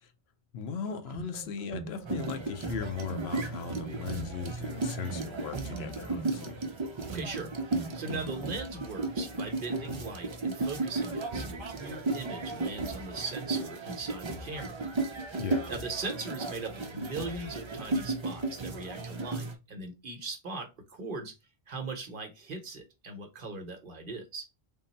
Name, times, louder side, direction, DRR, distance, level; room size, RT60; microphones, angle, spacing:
voice 1, 0.5-6.6 15.4-15.7, left 6 dB, 75° left, 0.8 m, -38 dB
sound 1, 0.8-8.8, right 5 dB, 15° right, 1.2 m, -43 dB
sound 2, 2.0-19.5, right 2 dB, 40° right, 0.4 m, -35 dB
voice 2, 7.1-14.8 15.3-21.3 21.7-24.5, right 3 dB, 55° right, 0.9 m, -39 dB
3.7 x 2.0 x 3.9 m
omnidirectional pair, 1.1 m